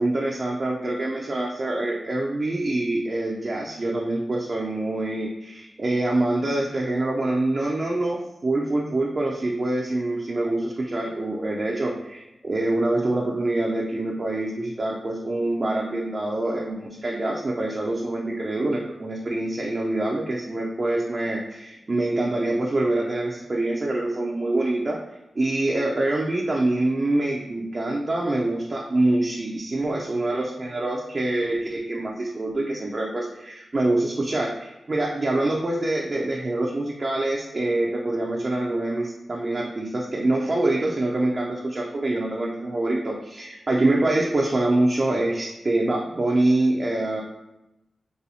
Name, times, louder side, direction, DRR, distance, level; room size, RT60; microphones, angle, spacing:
voice 1, 0.0-25.0 25.4-47.2, right 2 dB, 40° right, -2 dB, 0.4 m, -25 dB
4.1 x 2.3 x 2.7 m, 0.94 s
wide cardioid pair, 85°, 0 cm